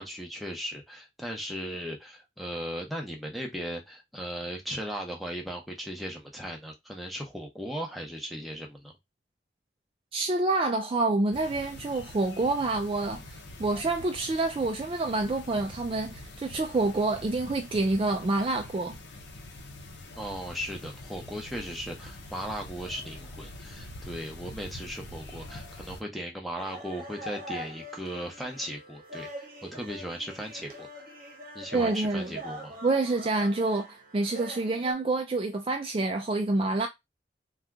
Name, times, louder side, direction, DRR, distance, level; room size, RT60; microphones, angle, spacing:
voice 1, 0.0-8.9 20.2-31.1 31.5-32.8, equal, ahead, 0.7 m, -37 dB
voice 2, 10.1-18.9 31.7-32.3 32.8-36.9, right 2 dB, 30° right, 0.3 m, -27 dB
sound 1, 11.3-26.0, left 2 dB, 85° left, 0.7 m, -45 dB
sound 2, 26.6-34.9, right 1 dB, 50° right, 0.9 m, -43 dB
2.7 x 2.3 x 3.5 m
head